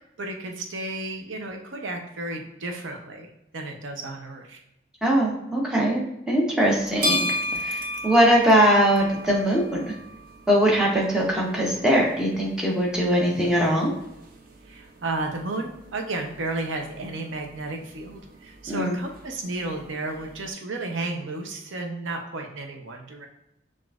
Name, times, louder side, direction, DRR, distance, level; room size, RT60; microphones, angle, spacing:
voice 1, 0.2-3.3 3.5-4.6 14.6-23.3, right 2 dB, 90° right, 3 dB, 0.7 m, -33 dB
voice 2, 5.0-6.0 6.3-7.3 7.6-9.9 10.5-13.9 18.7-18.9, equal, 5° right, -3 dB, 0.8 m, -21 dB
sound 1, 6.6-20.5, left 1 dB, 45° right, 0.5 m, -36 dB
5.9 x 2.4 x 2.4 m, 0.86 s
head